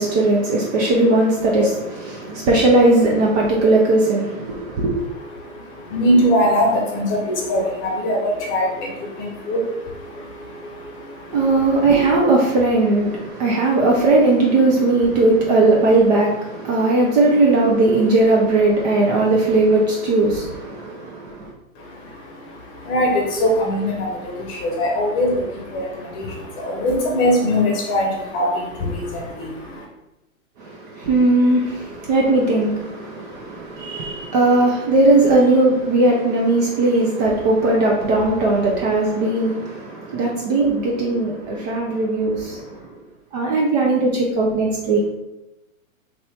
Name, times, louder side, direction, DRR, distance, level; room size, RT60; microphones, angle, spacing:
voice 1, 0.0-5.0 11.3-21.5 30.6-42.8 43.3-45.0, right 2 dB, 30° right, 0.5 m, -18 dB
voice 2, 5.3-12.1 21.8-29.8, equal, 30° left, 0.9 m, -22 dB
2.9 x 2.6 x 3.3 m
hypercardioid pair, 120°, 42 cm